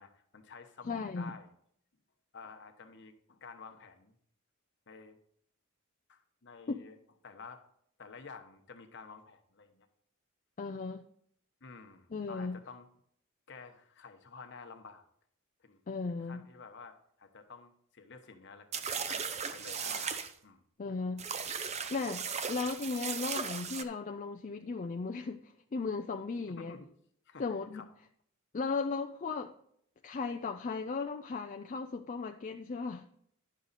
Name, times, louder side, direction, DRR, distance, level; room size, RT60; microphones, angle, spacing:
voice 1, 0.0-1.5 2.3-4.2 4.9-5.2 6.1-7.0 7.2-7.6 8.0-9.9 11.6-12.9 13.5-15.0 15.6-15.8 16.1-18.7 19.1-20.6 26.6-26.9 27.3-27.4 27.7-27.9, left 4 dB, 55° left, 1.0 m, -51 dB
voice 2, 0.9-1.3 6.7-6.8 10.6-11.0 12.1-12.6 15.9-16.4 20.8-21.3 21.9-26.8 27.4-27.8 28.5-29.5 30.0-33.0, left 4 dB, 35° left, 0.4 m, -36 dB
sound 1, 18.7-20.3 21.2-23.8, right 6 dB, 30° right, 0.5 m, -37 dB
10.5 x 6.4 x 4.1 m
head